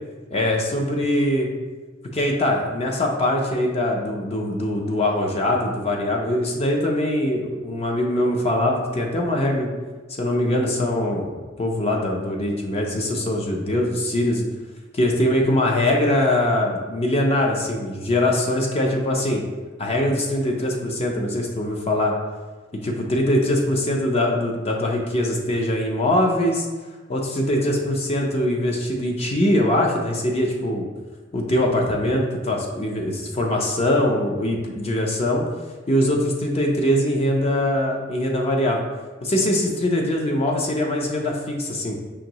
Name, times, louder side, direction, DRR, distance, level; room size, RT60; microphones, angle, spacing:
voice 1, 0.3-1.5 2.1-9.7 10.2-11.3 11.6-14.5 14.9-19.4 19.8-22.1 22.8-26.7 27.1-30.9 31.3-35.4 35.9-38.8 39.2-42.0, left 1 dB, 35° left, 0 dB, 0.5 m, -22 dB
5.0 x 2.6 x 2.9 m, 1.3 s
head